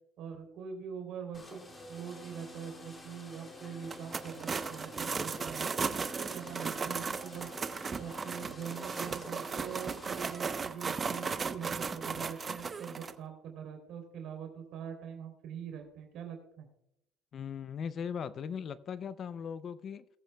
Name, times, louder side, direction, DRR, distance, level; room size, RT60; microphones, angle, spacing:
voice 1, 0.2-7.5 8.0-16.7, right 7 dB, 65° right, 3.2 m, -43 dB
sound 1, 1.3-10.3, left 1 dB, 20° left, 2.3 m, -49 dB
sound 2, 3.8-13.1, right 5 dB, 30° right, 0.7 m, -36 dB
voice 2, 17.3-20.2, left 7 dB, 45° left, 0.5 m, -39 dB
20.0 x 8.4 x 2.2 m
cardioid pair, 115°, 0 cm